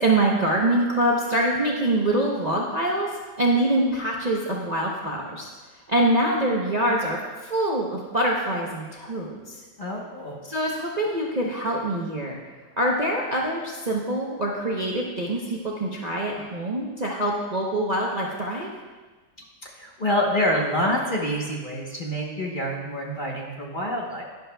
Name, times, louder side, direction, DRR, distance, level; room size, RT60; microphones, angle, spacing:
voice 1, 0.0-3.1 3.4-5.5 5.9-9.6 10.4-12.4 12.8-18.7, right 1 dB, 55° right, -3 dB, 0.4 m, -24 dB
voice 2, 9.8-10.4 19.6-24.2, equal, 35° left, -2 dB, 0.8 m, -27 dB
11.0 x 10.5 x 2.3 m, 1.3 s
omnidirectional pair, 2.1 m